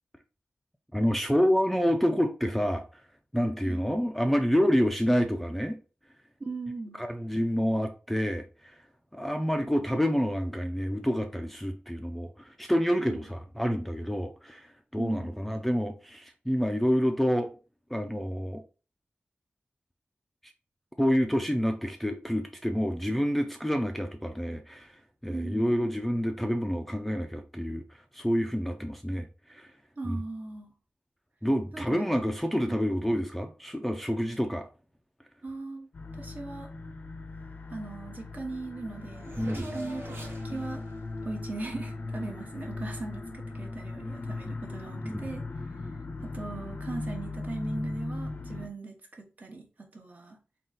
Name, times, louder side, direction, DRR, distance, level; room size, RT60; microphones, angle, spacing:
voice 1, 0.9-2.8 3.3-5.8 7.0-8.8 9.1-17.5 17.9-18.6 21.0-27.8 28.1-29.7 30.0-30.2 31.4-34.7 39.4-39.7 45.0-45.3, equal, 5° left, 0.4 m, -28 dB
voice 2, 6.4-7.0 13.1-13.3 14.9-15.3 25.3-25.8 30.0-30.7 31.7-31.8 32.7-32.8 35.4-35.9 36.2-36.7 37.7-40.2 40.4-40.8 41.2-45.4 46.2-50.4, right 3 dB, 45° right, 0.9 m, -39 dB
sound 1, 35.9-48.7, left 2 dB, 50° left, 0.5 m, -38 dB
Race car auto racing / Accelerating revving vroom, 38.1-38.2 38.4-42.4, right 1 dB, 85° right, 1.1 m, -45 dB
3.8 x 2.4 x 3.8 m
wide cardioid pair, 105°, 4 cm